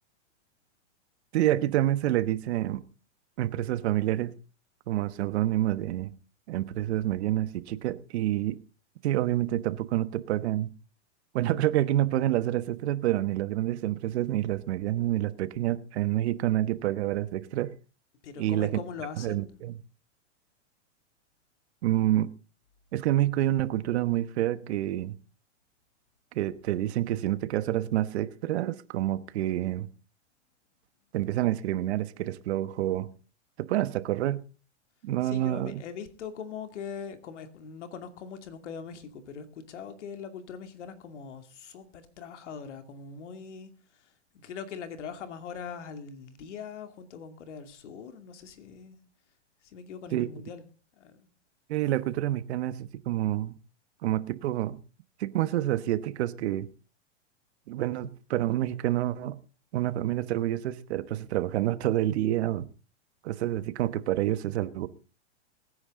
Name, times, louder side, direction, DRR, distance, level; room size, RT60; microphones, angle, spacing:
voice 1, 1.3-2.8 3.4-4.3 4.9-6.1 6.5-8.6 9.0-10.7 11.3-17.7 18.4-18.7 19.2-19.8 21.8-22.3 22.9-25.1 26.3-29.9 31.1-33.1 33.6-34.4 35.0-35.8 50.1-50.3 51.7-53.6 54.0-54.8 55.2-56.7 57.7-59.4 59.7-62.7 63.2-64.9, right 14 dB, 65° right, 1.2 m, -28 dB
voice 2, 18.2-19.5 35.2-44.0 44.3-49.0 49.6-50.6 51.0-51.3, left 6 dB, 75° left, 2.6 m, -41 dB
22.5 x 9.8 x 3.7 m
hypercardioid pair, 120°, 36 cm